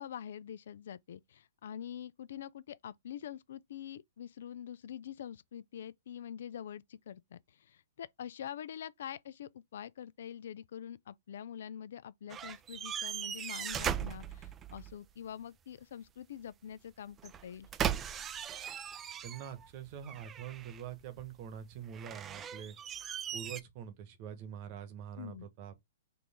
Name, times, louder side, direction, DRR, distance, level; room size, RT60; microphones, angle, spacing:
voice 1, 0.0-17.7 25.2-25.5, left 9 dB, 65° left, 0.3 m, -45 dB
sound 1, 12.3-14.9 17.2-19.7 20.0-20.9 21.9-23.6, right 9 dB, 20° right, 0.3 m, -38 dB
voice 2, 19.2-22.8 23.3-25.7, right 9 dB, 45° right, 1.1 m, -45 dB
4.5 x 2.5 x 3.5 m
hypercardioid pair, 125°, 0 cm